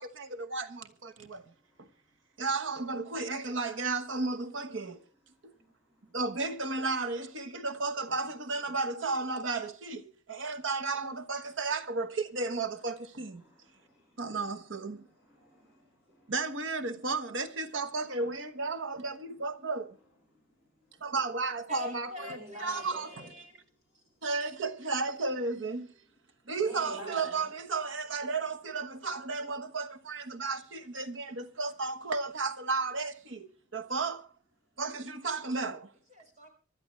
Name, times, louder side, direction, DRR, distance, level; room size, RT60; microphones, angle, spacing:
voice 1, 0.0-1.4 1.8-1.9 2.4-5.0 5.4-5.5 6.1-13.4 14.2-15.0 16.3-20.0 21.0-23.2 24.2-25.9 26.5-34.3 34.8-35.9, right 3 dB, 80° right, 1.2 m, -33 dB
voice 2, 5.6-6.2 13.4-14.2 15.0-16.3 20.5-20.6 22.2-23.3 26.6-27.4, left 1 dB, 10° right, 5.6 m, -49 dB
voice 3, 21.7-23.6 23.9-24.0 36.1-36.5, left 1 dB, 35° right, 5.1 m, -46 dB
25.0 x 12.5 x 3.2 m
head